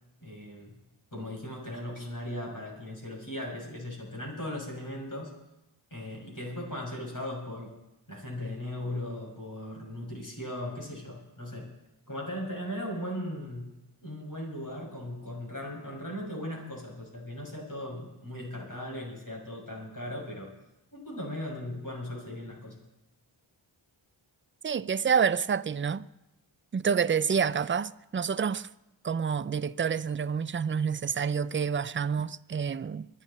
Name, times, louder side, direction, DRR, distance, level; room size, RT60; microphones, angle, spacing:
voice 1, 0.2-0.7 1.1-5.3 5.9-7.7 8.1-11.7 12.1-13.7 14.0-20.5 20.9-22.7, left 1 dB, 40° left, 6.4 m, -38 dB
voice 2, 24.6-26.1 26.7-28.7 29.0-33.1, right 6 dB, 25° right, 0.4 m, -28 dB
23.5 x 11.0 x 4.2 m
cardioid pair, 45°, 49 cm